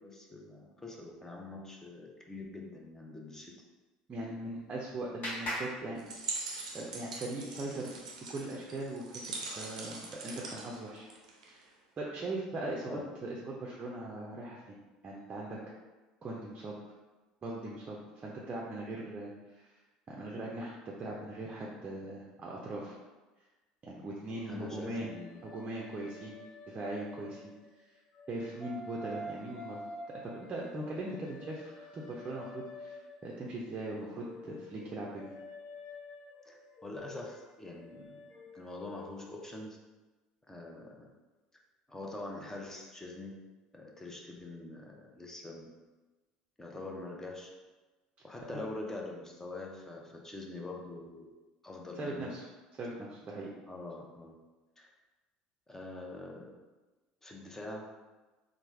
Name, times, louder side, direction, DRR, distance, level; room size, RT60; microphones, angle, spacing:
voice 1, 0.0-3.5 4.2-4.3 12.9-13.1 24.5-25.5 36.4-38.2 38.5-39.8 40.5-41.1 41.9-43.4 43.7-45.7 46.6-47.5 48.2-51.3 51.6-52.3 53.7-54.4 54.8-54.9 55.7-56.5 57.2-57.9, left 2 dB, 10° left, -1 dB, 0.6 m, -44 dB
Clapping, 4.1-6.7, equal, 40° left, 1.3 m, -42 dB
voice 2, 4.1-6.0 6.7-7.9 8.3-11.1 11.5-11.7 12.0-14.8 15.0-15.6 16.2-16.8 17.4-19.8 20.1-23.0 23.8-25.1 25.4-26.4 26.7-27.5 28.3-29.8 30.2-35.3 48.5-48.6 52.0-52.5 52.7-53.5, right 2 dB, 30° right, -4 dB, 0.5 m, -40 dB
sound 1, 6.0-11.6, right 3 dB, 85° right, 0.5 m, -42 dB
sound 2, 24.2-27.7 28.2-33.4 33.8-39.4, left 1 dB, 55° left, 0.7 m, -49 dB
3.2 x 2.0 x 3.2 m, 1.2 s
hypercardioid pair, 70°, 4 cm